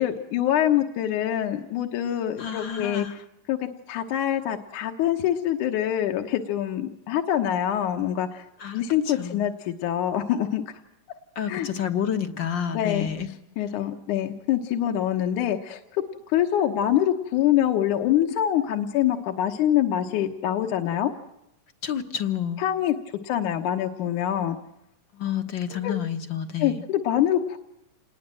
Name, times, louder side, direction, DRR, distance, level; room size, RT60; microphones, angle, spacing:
voice 1, 0.0-3.1 3.5-8.5 8.7-10.6 11.5-11.7 12.7-13.1 13.6-21.1 22.6-23.0 23.2-24.6 25.7-25.9 26.6-27.6, left 11 dB, 70° left, 4 dB, 2.6 m, -25 dB
voice 2, 2.4-3.2 8.6-9.5 11.3-13.3 21.8-22.6 25.1-26.8, left 8 dB, 55° left, 7 dB, 1.4 m, -29 dB
27.5 x 20.5 x 7.6 m, 0.83 s
omnidirectional pair, 3.8 m